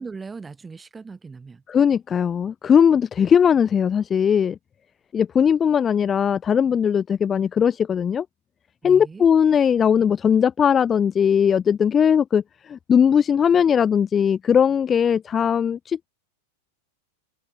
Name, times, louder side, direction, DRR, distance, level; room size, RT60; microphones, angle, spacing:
voice 1, 0.0-1.6 8.8-9.3, right 4 dB, 15° right, 5.2 m, -38 dB
voice 2, 1.7-4.6 5.1-8.3 8.8-16.0, left 7 dB, 20° left, 0.6 m, -19 dB
figure-of-eight pair, 90°, 0 cm